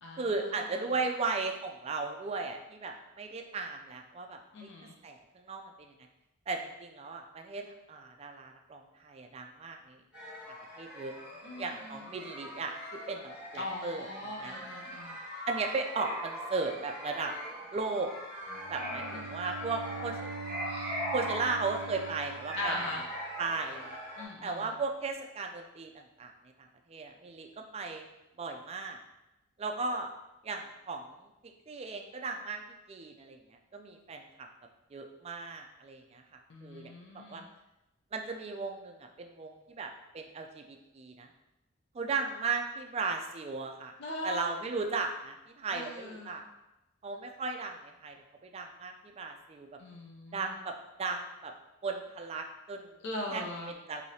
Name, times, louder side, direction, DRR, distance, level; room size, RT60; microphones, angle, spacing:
voice 1, 0.2-4.7 5.0-5.9 6.5-10.0 10.5-11.1 11.6-14.5 15.5-17.3 17.7-18.1 18.7-20.2 21.1-23.0 23.4-24.0 24.4-26.3 26.9-28.1 28.4-29.0 29.6-30.1 30.4-32.6 32.9-34.5 34.9-37.4 38.1-41.3 41.9-43.9 44.2-46.4 47.0-48.2 48.4-49.7 50.3-51.5 51.8-52.9 53.3-54.0, right 4 dB, 30° right, 3 dB, 0.3 m, -36 dB
voice 2, 4.5-4.9 11.4-12.1 13.5-15.2 18.8-19.4 22.5-23.0 24.2-24.7 36.5-37.5 44.0-44.5 45.7-46.4 49.8-50.5 53.0-53.7, left 1 dB, 60° left, -1 dB, 0.5 m, -40 dB
sound 1, 10.1-24.2, equal, 5° right, 1.4 m, -41 dB
Bowed string instrument, 18.5-23.5, right 4 dB, 60° right, 0.7 m, -43 dB
4.8 x 2.7 x 2.7 m, 0.94 s
head